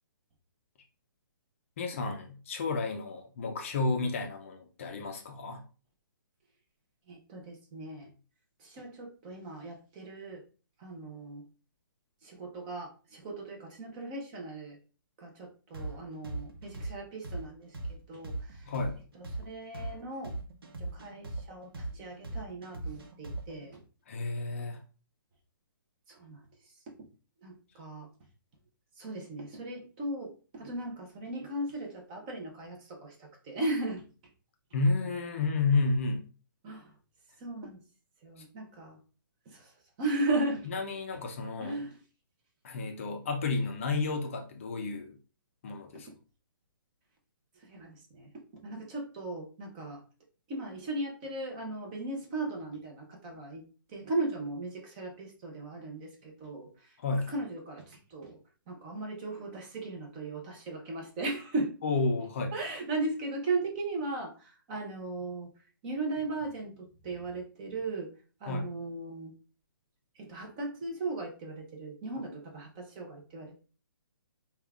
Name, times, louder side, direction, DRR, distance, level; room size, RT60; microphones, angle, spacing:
voice 1, 1.8-5.6 18.7-19.0 24.1-24.8 34.7-36.3 38.4-38.5 40.7-41.8 42.6-45.2 45.6-46.1 57.0-57.3 61.8-62.5 68.5-68.7, left 3 dB, 35° left, 4 dB, 0.5 m, -31 dB
voice 2, 7.1-8.1 8.6-10.4 10.8-11.4 12.2-14.8 15.2-18.7 19.2-20.3 20.8-23.8 26.1-26.4 27.4-28.1 29.0-34.0 36.6-36.9 37.4-37.8 38.2-39.0 39.5-39.7 40.0-40.7 41.6-41.9 47.6-48.3 48.6-50.0 50.5-53.6 53.9-57.0 57.3-58.4 58.7-61.7 62.5-65.5 65.8-68.1 68.4-69.3 70.2-73.5, right 2 dB, 20° right, 2 dB, 0.7 m, -37 dB
sound 1, 15.7-23.7, right 2 dB, 90° right, 0.8 m, -39 dB
5.1 x 2.3 x 2.3 m, 0.36 s
hypercardioid pair, 165°, 12 cm